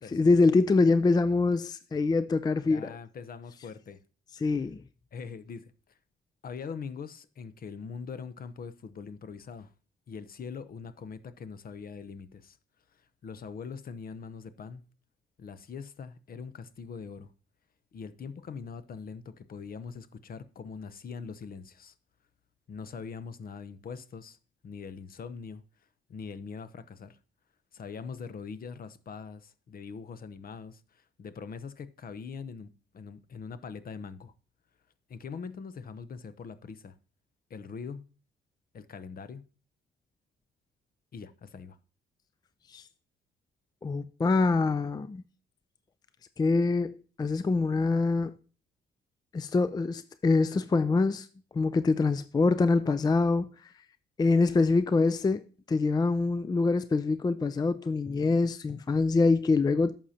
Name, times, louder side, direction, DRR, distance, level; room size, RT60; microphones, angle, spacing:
voice 1, 0.1-2.9 4.4-4.8 42.7-42.8 43.8-45.2 46.4-48.4 49.3-51.3 51.5-53.7 54.2-60.0, left 3 dB, 20° left, 0.4 m, -25 dB
voice 2, 2.3-4.0 4.4-4.5 5.1-5.7 6.4-9.7 10.1-12.6 12.9-14.8 15.4-17.3 17.9-21.9 22.7-24.4 24.6-25.6 26.1-27.2 27.7-34.3 35.1-36.9 37.5-38.1 38.7-39.4 41.1-41.8, left 5 dB, 45° left, 0.8 m, -42 dB
11.5 x 7.3 x 2.8 m
cardioid pair, 90°, 20 cm